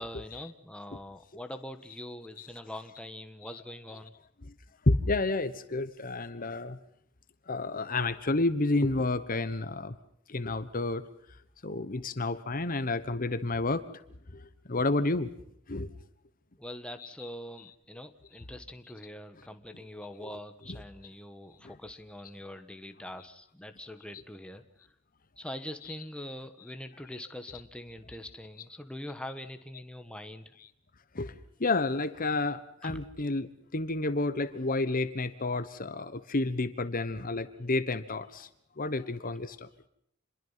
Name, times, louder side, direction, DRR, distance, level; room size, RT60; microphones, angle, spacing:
voice 1, 0.0-4.1 16.6-24.6 25.4-30.6 32.8-33.0, left 1 dB, 5° left, 7 dB, 1.4 m, -43 dB
voice 2, 3.4-4.0 4.9-6.8 7.5-9.9 10.3-11.0 11.6-13.8 14.7-15.3 15.7-15.9 17.0-17.1 20.2-20.3 21.6-21.7 24.1-24.2 31.1-31.3 31.6-38.5 38.8-39.7, left 2 dB, 45° left, 13 dB, 1.2 m, -30 dB
27.5 x 22.0 x 5.8 m, 0.70 s
head